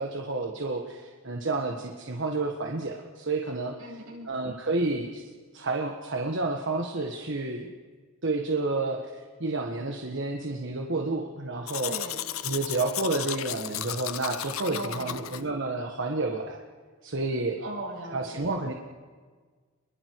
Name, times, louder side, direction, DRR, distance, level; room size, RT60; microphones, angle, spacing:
voice 1, 0.0-3.7 4.3-5.2 5.5-7.7 8.2-12.0 12.4-16.6 17.0-17.6 18.1-18.7, right 2 dB, 60° right, 2 dB, 1.5 m, -30 dB
voice 2, 3.8-4.5 11.8-12.2 14.6-15.2 17.6-18.5, right 2 dB, 80° right, -3 dB, 7.9 m, -38 dB
Domestic sounds home sounds, 11.7-15.4, left 12 dB, 85° left, 0.8 m, -34 dB
29.5 x 22.0 x 4.7 m, 1.5 s
head